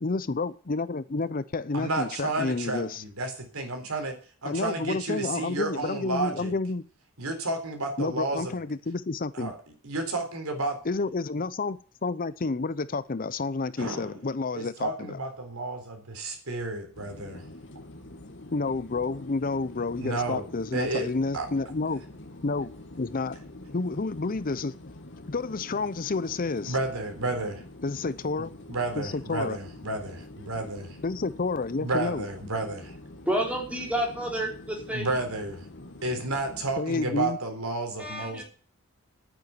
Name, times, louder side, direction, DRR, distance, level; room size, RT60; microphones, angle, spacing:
voice 1, 0.0-3.0 4.4-6.8 8.0-9.5 10.9-15.2 18.5-22.0 22.4-22.7 23.0-23.4 23.7-24.7 25.3-26.8 27.8-28.5 29.0-29.6 31.0-32.3 36.8-37.4, left 3 dB, 40° left, 0.6 m, -30 dB
voice 2, 1.7-4.2 4.4-6.5 7.2-8.5 9.3-9.5 9.8-10.8 13.8-14.1 14.5-17.5 20.0-21.1 21.3-21.5 26.7-27.6 28.7-31.0 31.8-33.0 34.9-35.7 36.0-38.4, right 2 dB, 80° right, 4.0 m, -31 dB
sound 1, 16.9-36.8, left 1 dB, 55° left, 2.2 m, -46 dB
voice 3, 33.3-35.2 38.0-38.4, right 1 dB, 5° right, 4.1 m, -30 dB
9.7 x 9.2 x 9.5 m
head